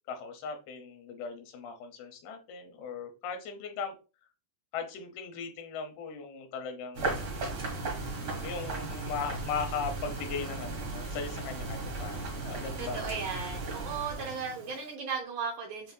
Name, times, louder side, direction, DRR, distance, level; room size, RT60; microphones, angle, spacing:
voice 1, 0.1-4.0 4.7-7.3 8.4-13.2, left 5 dB, 85° left, 6 dB, 2.8 m, -38 dB
sound 1, 6.9-14.9, right 3 dB, 65° right, 1.0 m, -36 dB
voice 2, 12.8-15.9, right 5 dB, 80° right, 0 dB, 1.8 m, -36 dB
7.5 x 2.6 x 2.2 m, 0.32 s
omnidirectional pair, 4.3 m